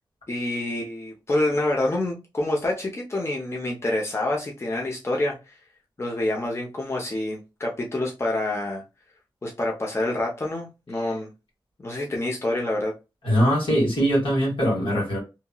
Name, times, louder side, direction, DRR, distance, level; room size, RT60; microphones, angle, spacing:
voice 1, 0.3-5.6 6.0-8.8 9.4-11.3 11.8-12.9, left 1 dB, 30° left, 0.7 m, -27 dB
voice 2, 13.2-15.2, equal, 80° left, 1.6 m, -21 dB
2.8 x 2.7 x 2.2 m
wide cardioid pair, 100°, 9 cm